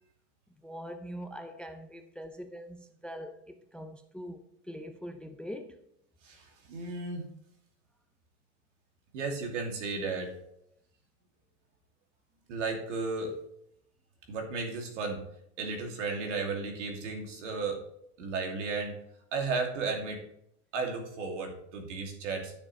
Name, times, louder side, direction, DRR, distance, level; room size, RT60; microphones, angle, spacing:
voice 1, 0.6-4.4 4.7-5.8, equal, 5° left, 0.4 m, -43 dB
voice 2, 6.2-7.3 9.1-10.3 12.5-13.3 14.3-15.2 15.6-17.8 18.2-19.0 19.3-20.2 20.7-22.5, right 4 dB, 80° right, 2.6 m, -34 dB
12.5 x 6.7 x 3.2 m
supercardioid pair, 130°, 36 cm